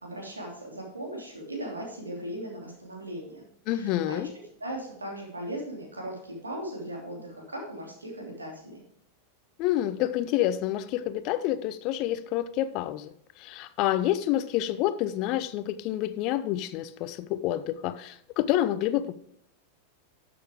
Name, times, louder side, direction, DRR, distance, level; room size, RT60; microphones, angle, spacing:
voice 1, 0.0-3.5 3.7-4.3 4.6-8.8, right 1 dB, 80° right, -1 dB, 3.0 m, -38 dB
voice 2, 3.7-4.3 9.6-19.1, left 13 dB, 40° left, 14 dB, 0.6 m, -28 dB
12.0 x 6.9 x 3.6 m, 0.69 s
figure-of-eight pair, 90°, 0 cm